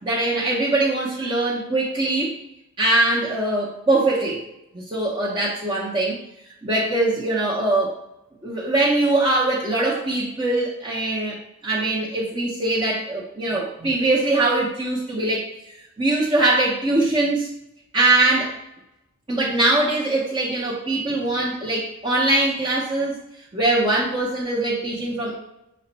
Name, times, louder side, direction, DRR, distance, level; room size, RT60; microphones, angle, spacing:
voice 1, 0.0-2.4 2.8-4.4 4.7-6.2 6.6-7.9 8.4-11.4 11.6-15.5 16.0-17.5 17.9-18.5 19.3-23.2 23.5-25.4, right 2 dB, 25° right, -7 dB, 0.7 m, -22 dB
6.3 x 2.1 x 3.9 m, 0.86 s
head